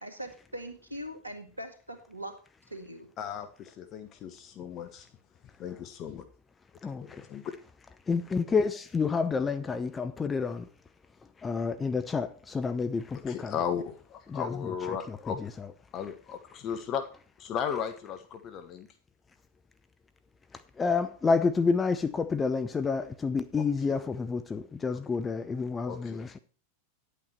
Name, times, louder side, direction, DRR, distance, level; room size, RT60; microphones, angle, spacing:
voice 1, 0.0-2.4 2.7-3.1, equal, 80° right, 1.9 m, -41 dB
voice 2, 3.2-5.1 5.6-6.3 7.0-7.5 13.3-15.4 15.9-17.0 17.4-18.9 25.9-26.2, left 8 dB, 35° left, 1.1 m, -35 dB
voice 3, 6.8-7.3 8.1-10.7 11.4-13.6 14.3-15.7 20.5-26.4, left 4 dB, 15° left, 0.6 m, -29 dB
10.5 x 8.3 x 4.4 m
figure-of-eight pair, 90°, 0 cm